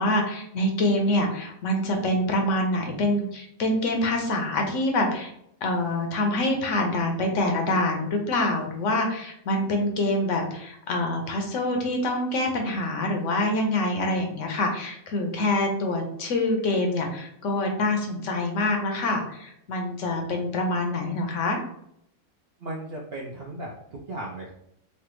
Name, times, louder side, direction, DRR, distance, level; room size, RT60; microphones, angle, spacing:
voice 1, 0.0-5.3 5.6-21.6, left 1 dB, 65° left, 3 dB, 0.9 m, -25 dB
voice 2, 22.6-24.5, right 1 dB, 70° right, -2 dB, 0.6 m, -36 dB
3.2 x 2.3 x 3.0 m, 0.74 s
omnidirectional pair, 1.5 m